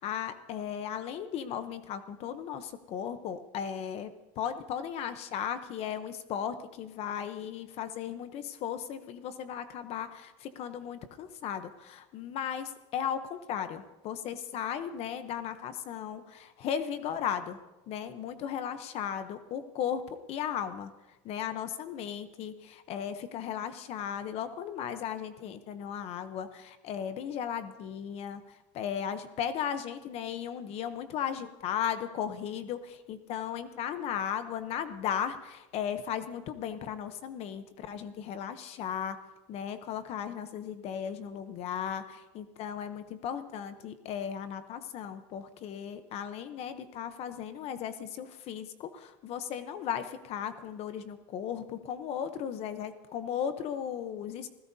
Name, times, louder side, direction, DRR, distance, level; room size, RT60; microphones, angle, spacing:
voice 1, 0.0-17.6 17.9-39.2 39.5-54.5, left 8 dB, 40° left, 10 dB, 0.8 m, -36 dB
26.0 x 16.0 x 2.7 m, 1.1 s
cardioid pair, 160°, 15 cm